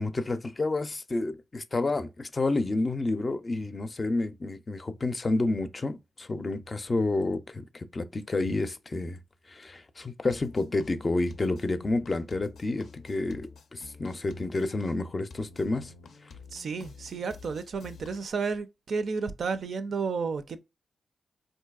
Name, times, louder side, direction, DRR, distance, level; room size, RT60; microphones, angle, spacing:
voice 1, 0.0-9.2 9.5-15.9, left 2 dB, 35° left, 0.4 m, -30 dB
sound 1, 10.3-18.3, left 5 dB, 85° left, 0.5 m, -50 dB
voice 2, 16.5-20.6, right 5 dB, 70° right, 0.4 m, -32 dB
3.9 x 2.6 x 2.3 m
cardioid pair, 75°, 0 cm